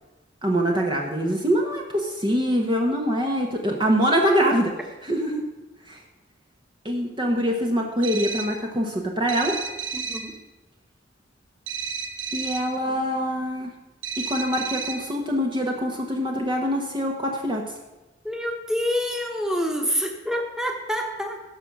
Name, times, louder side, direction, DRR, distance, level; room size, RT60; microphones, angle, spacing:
voice 1, 0.4-4.7 5.0-5.4 5.9-6.0 6.8-9.6 12.3-13.7 14.2-17.6, equal, 25° right, 0 dB, 1.1 m, -24 dB
Telephone Ringing (Digital), 8.0-8.7 9.3-10.4 11.7-12.8 14.0-15.2, right 6 dB, 85° right, 0.9 m, -32 dB
voice 2, 9.9-10.3 12.9-13.0 18.2-21.4, equal, 5° right, 2 dB, 1.5 m, -27 dB
16.0 x 6.4 x 6.0 m, 1.1 s
head